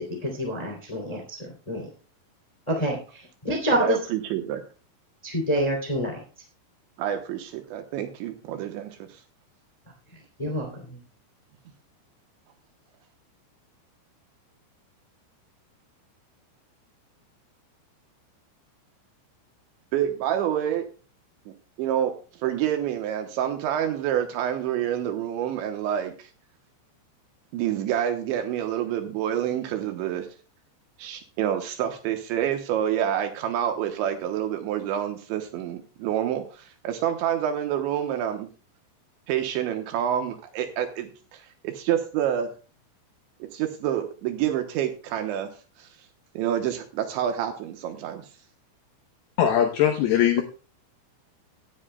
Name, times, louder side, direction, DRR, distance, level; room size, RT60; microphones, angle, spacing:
voice 1, 0.0-1.9 2.7-3.0 3.4-4.0 5.2-6.2 10.4-11.0, equal, 20° left, 1 dB, 0.8 m, -27 dB
voice 2, 3.8-4.6 7.0-9.2 19.9-20.9 21.8-26.3 27.5-30.3 31.0-38.5 39.3-42.5 43.5-45.5 45.8-45.9 46.3-48.3, right 10 dB, 80° right, 6 dB, 2.9 m, -28 dB
voice 3, 49.4-50.4, left 10 dB, 80° left, 5 dB, 2.3 m, -20 dB
17.5 x 10.0 x 2.2 m, 0.35 s
omnidirectional pair, 5.9 m